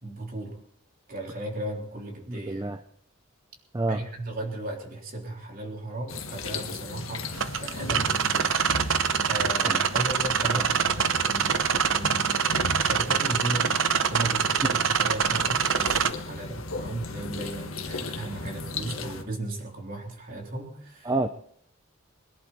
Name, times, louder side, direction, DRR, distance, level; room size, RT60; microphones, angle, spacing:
voice 1, 0.0-0.6 1.1-2.7 3.9-13.8 14.1-21.1, right 1 dB, 40° right, 0 dB, 3.6 m, -36 dB
voice 2, 2.3-2.8 3.7-4.0 9.6-9.8 14.7-14.8 21.0-21.3, right 2 dB, 15° right, 9 dB, 0.5 m, -28 dB
sound 1, 6.1-19.2, left 2 dB, 70° left, 1.6 m, -36 dB
sound 2, 7.3-16.1, right 7 dB, 65° right, 0.9 m, -25 dB
22.0 x 11.0 x 4.3 m, 0.66 s
head